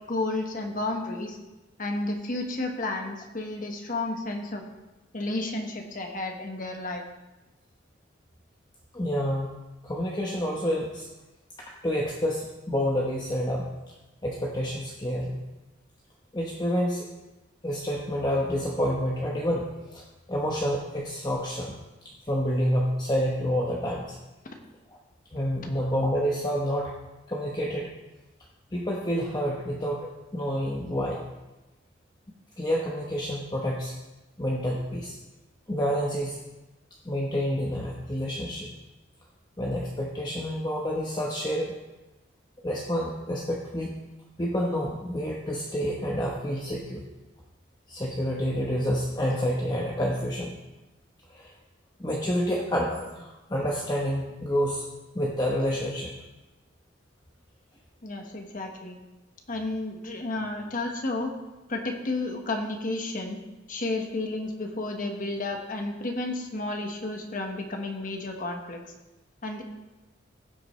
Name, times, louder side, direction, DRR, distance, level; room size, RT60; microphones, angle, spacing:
voice 1, 0.1-1.4 1.8-4.6 5.1-7.0 58.0-59.0 59.5-61.3 61.7-63.4 63.7-68.8 69.4-69.6, left 2 dB, 45° left, 3 dB, 1.4 m, -32 dB
voice 2, 8.9-9.5 9.8-11.1 11.6-13.9 14.2-15.4 16.3-17.1 17.6-20.0 20.3-21.8 22.3-24.2 25.3-26.9 27.3-27.9 28.7-31.2 32.6-33.9 34.4-35.2 35.7-36.4 37.0-38.7 39.6-41.7 42.6-43.9 44.4-47.0 47.9-50.5 51.3-51.5 52.0-54.9 55.1-56.1, equal, 20° left, -3 dB, 1.0 m, -28 dB
16.0 x 8.1 x 3.2 m, 1.1 s
head